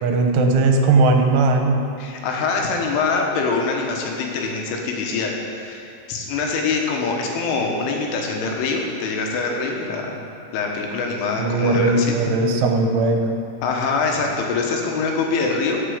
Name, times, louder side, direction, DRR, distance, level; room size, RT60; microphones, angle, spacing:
voice 1, 0.0-1.8 11.4-13.3, right 3 dB, 80° right, 3 dB, 3.4 m, -18 dB
voice 2, 2.0-10.2 10.5-12.2 13.6-15.8, left 4 dB, 80° left, 0 dB, 3.7 m, -24 dB
16.0 x 7.5 x 5.1 m, 2.5 s
omnidirectional pair, 5.6 m